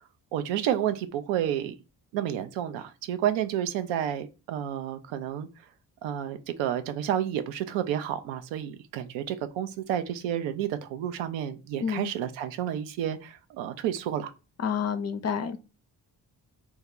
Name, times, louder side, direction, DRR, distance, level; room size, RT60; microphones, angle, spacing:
voice 1, 0.3-1.7 2.1-5.5 6.0-14.3, right 10 dB, 70° right, 0.6 m, -30 dB
voice 2, 11.8-12.1 14.6-15.6, left 7 dB, 35° left, 0.4 m, -29 dB
2.9 x 2.2 x 3.6 m
hypercardioid pair, 40°, 47 cm